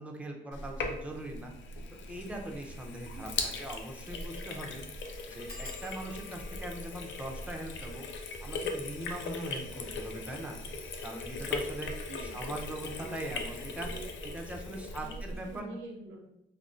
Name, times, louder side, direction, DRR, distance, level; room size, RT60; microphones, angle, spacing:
voice 1, 0.0-1.5 2.1-4.8 5.3-10.6 11.0-13.9 14.2-15.7, right 1 dB, 5° right, 1 dB, 0.5 m, -41 dB
Sink (filling or washing), 0.5-15.6, left 3 dB, 70° left, 0.4 m, -39 dB
voice 2, 3.1-3.5 12.1-12.8 13.0-13.5 13.8-16.3, right 3 dB, 90° right, 2 dB, 0.4 m, -48 dB
sound 1, 5.5-10.7 11.4-11.9 12.3-12.6 12.9-13.0, left 3 dB, 50° left, 0.9 m, -54 dB
3.6 x 2.1 x 2.5 m, 0.82 s
cardioid pair, 90°, 20 cm